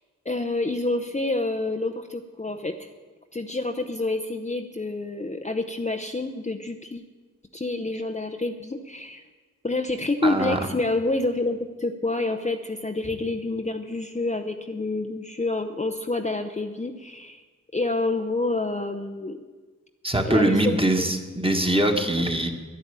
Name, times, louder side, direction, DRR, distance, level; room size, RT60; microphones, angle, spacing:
voice 1, 0.2-2.9 3.3-7.0 7.5-9.2 9.6-17.4 17.7-19.4 20.2-21.1, left 2 dB, 20° left, 5 dB, 0.7 m, -28 dB
voice 2, 10.2-10.6 20.0-22.5, right 1 dB, 15° right, 4 dB, 1.7 m, -22 dB
10.5 x 10.5 x 8.9 m, 1.4 s
wide cardioid pair, 60°, 33 cm